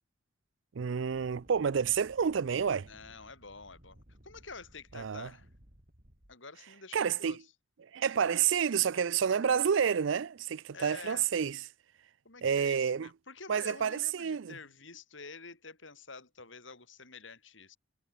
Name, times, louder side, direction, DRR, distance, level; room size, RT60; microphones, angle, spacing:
voice 1, 0.7-2.9 4.9-5.3 6.9-7.4 7.9-11.6 12.4-13.1 13.5-14.5, right 7 dB, 65° right, 0.4 m, -29 dB
sound 1, 1.0-6.4, equal, 45° right, 5.6 m, -59 dB
voice 2, 2.8-5.5 6.3-7.4 9.3-9.6 10.7-11.3 12.3-17.8, left 4 dB, 65° left, 5.2 m, -49 dB
head